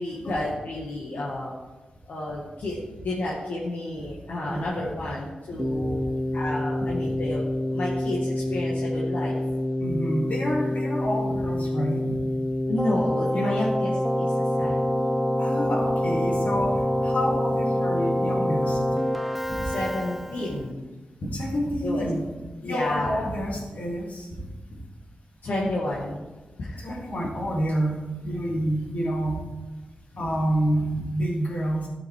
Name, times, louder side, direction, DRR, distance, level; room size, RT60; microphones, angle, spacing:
voice 1, 0.0-1.5 2.1-6.0 6.3-7.4 7.7-9.4 12.7-15.1 19.6-20.8 21.8-22.1 22.6-23.3 25.4-26.3 26.6-27.0, left 1 dB, 85° left, -5 dB, 2.0 m, -31 dB
voice 2, 4.4-4.8 5.5-5.9 9.8-12.0 13.3-13.7 14.6-14.7 15.4-18.8 19.5-19.6 20.4-20.5 21.3-22.3 22.6-24.3 24.7-24.8 26.8-29.4 30.1-31.9, equal, 60° left, -3 dB, 3.3 m, -28 dB
Keyboard (musical), 5.6-20.6, left 1 dB, ahead, 0.6 m, -26 dB
13.5 x 6.5 x 4.8 m, 1.2 s
wide cardioid pair, 80°, 3 cm